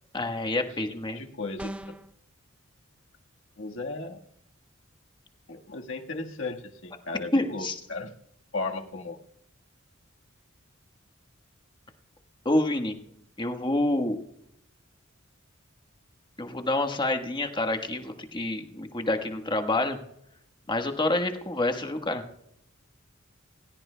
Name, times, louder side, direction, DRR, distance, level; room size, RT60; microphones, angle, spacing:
voice 1, 0.1-1.2 7.3-7.8 12.4-13.0 13.4-14.2 16.4-20.0 20.7-22.2, left 2 dB, 25° left, 5 dB, 1.3 m, -27 dB
voice 2, 1.2-1.9 3.6-4.2 5.5-8.1 8.5-9.2, left 3 dB, 70° left, 2 dB, 1.5 m, -35 dB
sound 1, 1.6-2.1, equal, 5° right, 0.5 m, -37 dB
27.5 x 16.0 x 2.2 m, 0.78 s
head